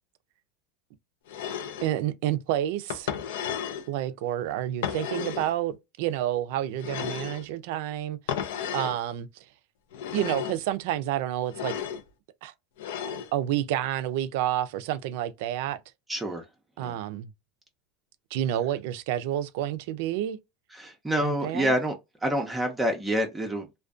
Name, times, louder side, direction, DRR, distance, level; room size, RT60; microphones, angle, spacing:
sound 1, 1.3-1.9 2.9-3.9 4.8-5.5 6.8-7.5 8.3-9.0 9.9-10.6 11.5-12.0 12.8-13.3, left 8 dB, 80° left, 0.4 m, -33 dB
voice 1, 1.8-3.1 3.9-8.2 8.7-9.3 10.1-11.7 12.4-12.5 13.3-15.8 16.8-17.3 18.3-20.4 21.2-21.7, right 12 dB, 70° right, 0.4 m, -29 dB
voice 2, 16.1-16.5 16.8-17.0 20.7-21.9 22.2-23.7, right 1 dB, 10° right, 0.5 m, -27 dB
2.4 x 2.2 x 2.4 m
supercardioid pair, 135°, 0 cm